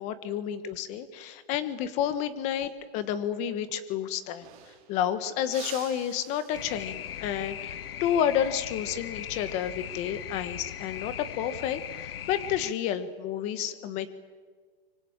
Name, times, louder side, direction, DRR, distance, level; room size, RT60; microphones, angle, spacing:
voice 1, 0.0-14.1, left 9 dB, 20° left, 13 dB, 1.4 m, -30 dB
sound 1, 3.8-3.9 4.1-5.0 5.4-7.2 9.7-10.0 11.4-11.9, right 11 dB, 35° right, 3.9 m, -48 dB
sound 2, 6.5-12.7, left 10 dB, 65° left, 1.1 m, -39 dB
24.5 x 24.0 x 9.0 m, 1.5 s
hypercardioid pair, 165°, 32 cm